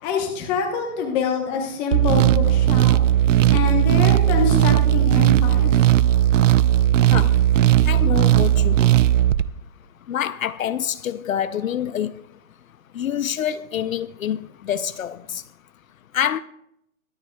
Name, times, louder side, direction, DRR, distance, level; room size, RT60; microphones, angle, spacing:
voice 1, 0.0-3.0 3.5-5.9, left 6 dB, 10° left, 0.9 m, -25 dB
sound 1, 1.9-9.4, right 12 dB, 60° right, 0.5 m, -17 dB
voice 2, 7.9-8.9 10.1-12.1 12.9-14.4 14.6-15.4 16.1-16.4, left 10 dB, 70° left, 0.6 m, -26 dB
23.0 x 8.9 x 2.2 m
hypercardioid pair, 165°, 42 cm